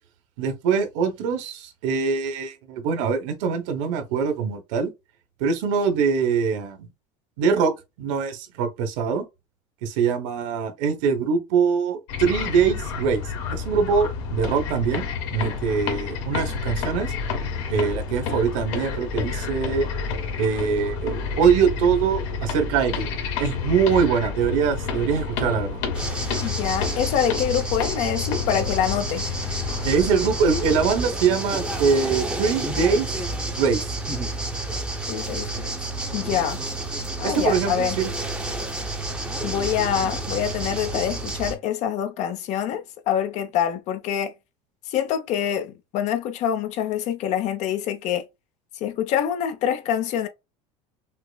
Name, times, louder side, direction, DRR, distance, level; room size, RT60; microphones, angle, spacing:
voice 1, 0.4-4.9 5.4-6.9 7.4-7.7 8.0-9.2 9.8-13.2 13.5-17.1 17.7-19.9 20.4-23.1 23.4-25.8 29.8-33.1 33.5-33.9 37.2-38.1, right 6 dB, 75° right, 1.2 m, -23 dB
sound 1, 12.1-30.9, left 5 dB, 75° left, 1.5 m, -29 dB
sound 2, 25.9-41.6, right 2 dB, 5° right, 0.7 m, -30 dB
voice 2, 26.4-29.2 35.1-35.7 36.1-36.6 37.2-38.0 39.4-44.3 44.9-48.2 48.8-50.3, left 9 dB, 45° left, 0.7 m, -25 dB
5.8 x 2.0 x 2.3 m
cardioid pair, 145°, 16 cm